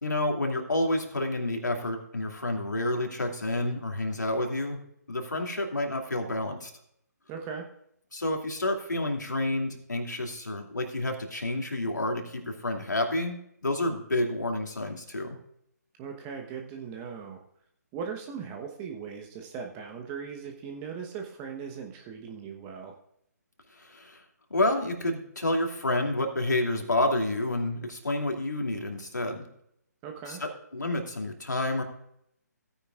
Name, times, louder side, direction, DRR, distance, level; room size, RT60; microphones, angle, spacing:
voice 1, 0.0-4.8 5.1-6.7 8.1-15.4 23.7-24.2 24.5-29.5 30.3-31.8, left 1 dB, 80° left, 2 dB, 2.6 m, -29 dB
voice 2, 7.3-7.7 16.0-17.4 17.9-22.9 30.0-30.4, right 6 dB, 20° right, 3 dB, 1.1 m, -39 dB
16.5 x 9.8 x 2.5 m, 0.73 s
figure-of-eight pair, 145°, 10 cm